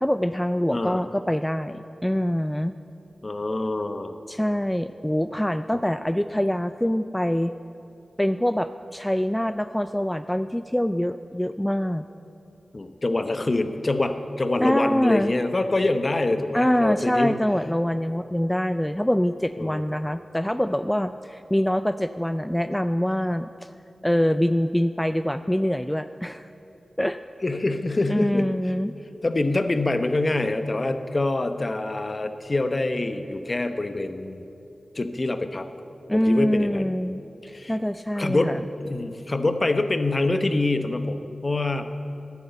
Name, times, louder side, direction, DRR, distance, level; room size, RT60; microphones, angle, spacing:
voice 1, 0.0-2.8 4.3-7.5 8.2-12.0 14.6-15.3 16.5-23.5 24.0-26.5 27.0-27.2 28.1-28.9 36.1-38.6, equal, 10° left, 11 dB, 0.3 m, -24 dB
voice 2, 3.2-4.2 12.7-17.4 19.6-19.8 27.4-28.7 29.2-34.4 34.9-35.7 36.1-36.9 37.5-37.8 38.2-41.8, left 2 dB, 40° left, 9 dB, 0.8 m, -25 dB
10.5 x 9.5 x 8.0 m, 2.8 s
cardioid pair, 50°, 0 cm